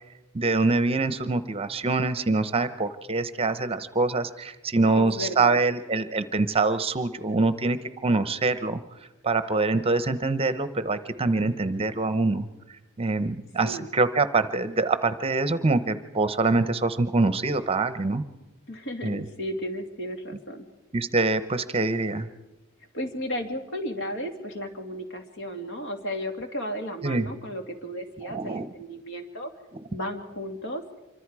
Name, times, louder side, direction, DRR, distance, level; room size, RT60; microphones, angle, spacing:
voice 1, 0.3-8.8 9.2-12.5 13.0-18.2 19.0-19.2 20.9-22.3 27.0-27.3 28.3-28.7, right 3 dB, 25° right, 12 dB, 0.8 m, -25 dB
voice 2, 4.9-5.6 13.6-13.9 18.7-20.7 22.9-29.5 29.9-30.8, equal, 60° left, 4 dB, 2.7 m, -34 dB
26.5 x 24.5 x 4.9 m, 1.0 s
head